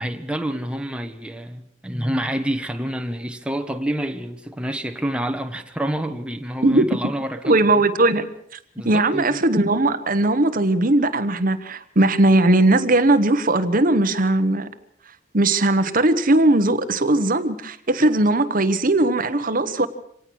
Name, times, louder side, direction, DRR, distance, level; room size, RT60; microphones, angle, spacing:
voice 1, 0.0-7.6 8.7-9.4, right 1 dB, 5° right, 1.2 m, -28 dB
voice 2, 7.4-8.3 8.8-14.7 15.3-19.9, right 2 dB, 45° right, 1.2 m, -18 dB
25.5 x 18.5 x 6.4 m
head